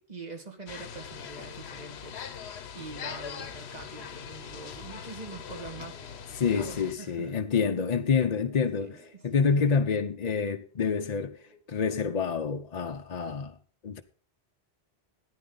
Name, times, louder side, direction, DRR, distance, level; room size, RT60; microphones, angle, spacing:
voice 1, 0.0-2.3 2.7-7.5 8.8-9.2, right 3 dB, 40° right, 2.1 m, -44 dB
sound 1, 0.7-6.9, left 7 dB, 80° left, 1.1 m, -41 dB
sound 2, 4.4-12.8, right 2 dB, 90° right, 6.7 m, -60 dB
voice 2, 6.3-11.4 11.7-13.6 13.8-14.0, left 5 dB, 45° left, 0.7 m, -27 dB
14.0 x 10.0 x 3.9 m
omnidirectional pair, 1.1 m